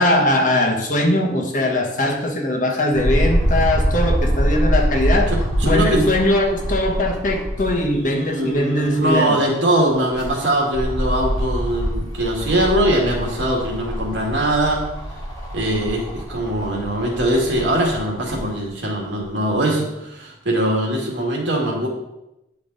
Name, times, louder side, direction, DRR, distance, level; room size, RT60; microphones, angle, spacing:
voice 1, 0.0-5.3 5.6-9.4, left 1 dB, 45° left, 2 dB, 1.3 m, -20 dB
sound 1, 2.9-8.0 8.4-8.5 9.9-18.4 19.2-19.3, equal, 20° left, 2.0 m, -24 dB
voice 2, 5.3-6.0 7.9-14.8 15.5-21.9, right 1 dB, 75° right, -1 dB, 2.0 m, -21 dB
9.3 x 5.2 x 4.0 m, 0.91 s
head